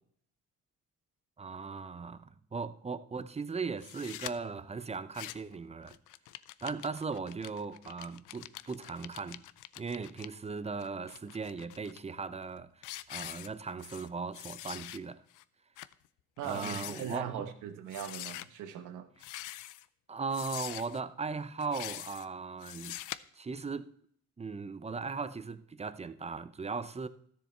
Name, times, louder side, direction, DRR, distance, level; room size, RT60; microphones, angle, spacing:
voice 1, 1.4-6.0 6.6-9.4 9.8-15.2 16.4-17.5 20.1-23.0 23.3-23.9 24.4-27.1, right 4 dB, 20° right, 0.7 m, -38 dB
sound 1, 3.8-4.3 4.9-5.5 5.9-10.3 10.8-12.0 12.4-12.6 12.8-14.1 14.3-15.0 15.3-15.4 15.8-15.9 16.4-17.2 17.9-18.5 19.2-19.9 20.3-21.0 21.6-22.3 22.6-23.2, left 15 dB, 85° left, 0.5 m, -44 dB
voice 2, 16.4-19.1, right 9 dB, 90° right, 1.2 m, -39 dB
13.0 x 7.0 x 4.4 m
cardioid pair, 90°, 30 cm